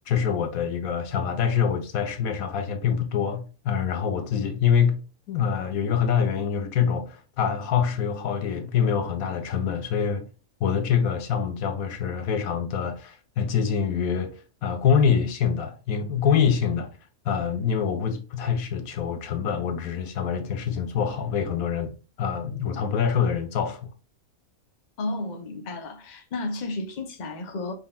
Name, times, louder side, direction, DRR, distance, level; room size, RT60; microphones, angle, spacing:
voice 1, 0.1-5.0 5.3-10.3 10.6-16.9 17.2-21.9 22.2-23.9, left 7 dB, 75° left, 1.1 m, -25 dB
voice 2, 25.0-27.7, left 2 dB, 40° left, 0.8 m, -32 dB
5.4 x 3.6 x 2.3 m
omnidirectional pair, 1.5 m